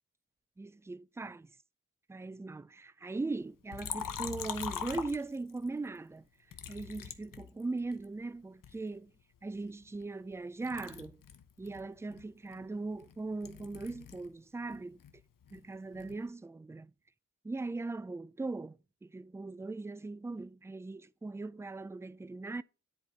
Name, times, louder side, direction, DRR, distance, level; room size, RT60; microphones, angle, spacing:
voice 1, 0.6-1.5 2.1-6.2 6.7-9.1 9.4-11.2 11.6-15.0 15.5-16.9 17.4-22.6, right 3 dB, 10° right, 0.3 m, -39 dB
Liquid, 3.7-5.7 6.5-8.1 8.6-10.4 10.6-14.3 14.6-16.2, left 8 dB, 85° left, 1.0 m, -43 dB
10.5 x 4.5 x 5.0 m
wide cardioid pair, 105°, 32 cm